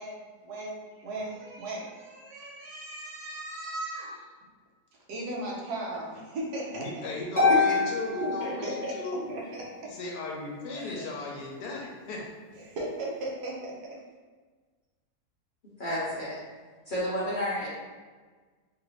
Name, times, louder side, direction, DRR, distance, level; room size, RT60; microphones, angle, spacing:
voice 1, 0.0-4.3 5.1-6.9 8.2-8.9 9.3-9.4 9.8-9.9 10.7-11.1 12.6-14.0, right 1 dB, 75° right, -2 dB, 1.2 m, -37 dB
voice 2, 6.7-9.4 9.8-12.2, left 2 dB, 75° left, -2 dB, 1.2 m, -36 dB
Harp, 7.4-9.2, left 4 dB, 15° right, 0.4 m, -26 dB
voice 3, 15.8-16.4 16.9-17.7, left 1 dB, 45° left, -10 dB, 0.7 m, -30 dB
3.2 x 2.5 x 3.1 m, 1.4 s
omnidirectional pair, 1.7 m